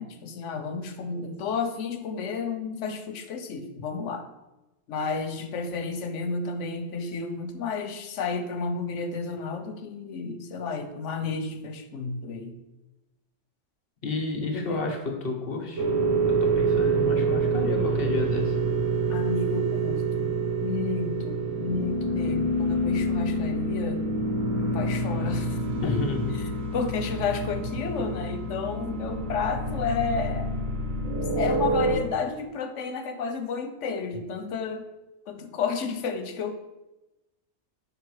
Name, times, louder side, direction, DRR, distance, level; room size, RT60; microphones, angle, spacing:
voice 1, 0.0-4.2 4.9-12.6 14.5-14.9 19.1-24.0 24.6-26.0 26.7-30.5 31.4-34.9 35.3-36.6, left 4 dB, 80° left, 8 dB, 1.0 m, -31 dB
voice 2, 14.0-15.9 16.3-18.6 25.8-26.3, left 3 dB, 55° left, 2 dB, 1.1 m, -30 dB
sound 1, 15.8-31.9, right 2 dB, 90° right, 1.4 m, -27 dB
5.9 x 4.9 x 4.8 m, 0.99 s
omnidirectional pair, 1.2 m